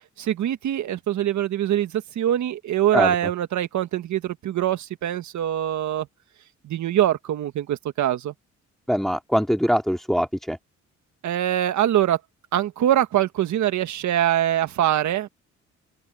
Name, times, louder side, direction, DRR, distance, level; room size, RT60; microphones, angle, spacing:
voice 1, 0.2-6.1 6.6-8.3 11.2-12.2 12.5-15.3, right 11 dB, 70° right, 1.6 m, -23 dB
voice 2, 8.9-10.6, equal, ahead, 2.3 m, -22 dB
open air
cardioid pair, 90°, 30 cm